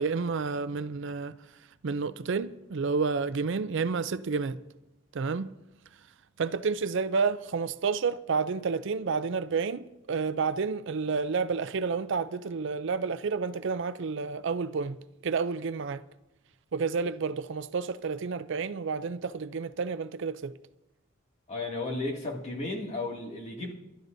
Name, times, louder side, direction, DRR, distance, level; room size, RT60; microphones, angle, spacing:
voice 1, 0.0-1.3 1.8-4.6 5.1-5.5 6.4-15.0 15.2-16.0 16.7-20.6, right 5 dB, 60° right, 0.5 m, -30 dB
voice 2, 21.5-23.7, left 2 dB, 35° left, 2.2 m, -34 dB
28.5 x 12.5 x 2.7 m
head